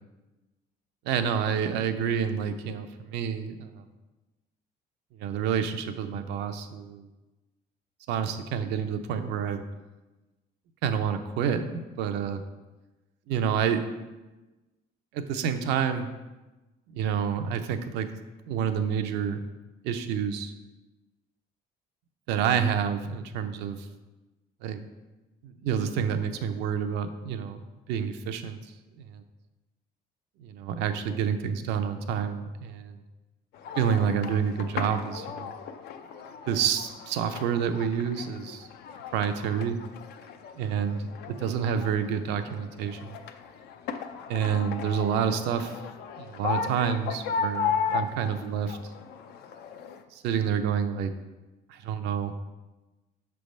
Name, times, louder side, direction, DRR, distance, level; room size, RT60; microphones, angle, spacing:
voice 1, 1.0-3.8 5.2-7.1 8.1-9.6 10.8-12.4 13.3-13.8 15.1-16.1 16.9-18.1 18.5-19.4 19.8-20.5 22.3-23.9 24.6-24.8 25.4-27.6 27.9-28.6 29.0-29.1 30.4-33.0 33.8-35.5 36.5-38.7 39.1-39.8 40.6-43.2 44.3-45.8 46.2-48.8 50.1-51.1 51.7-52.3, right 7 dB, 90° right, 8 dB, 0.5 m, -28 dB
sound 1, 33.5-50.0, left 6 dB, 75° left, 0.5 m, -36 dB
5.8 x 3.4 x 5.2 m, 1.1 s
cardioid pair, 110°, 17 cm